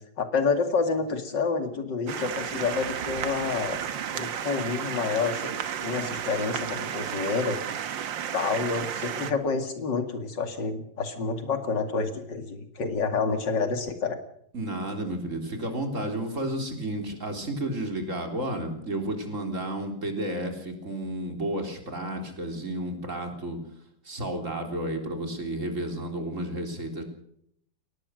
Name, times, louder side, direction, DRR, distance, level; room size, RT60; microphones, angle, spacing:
voice 1, 0.2-3.8 4.1-5.5 5.8-7.6 8.3-14.2, left 4 dB, 70° left, 7 dB, 3.0 m, -28 dB
sound 1, 2.1-9.3, right 8 dB, 85° right, 1.9 m, -33 dB
voice 2, 14.5-23.6 24.0-27.0, right 1 dB, 40° right, 4 dB, 4.1 m, -32 dB
22.5 x 18.5 x 6.5 m, 0.71 s
omnidirectional pair, 2.0 m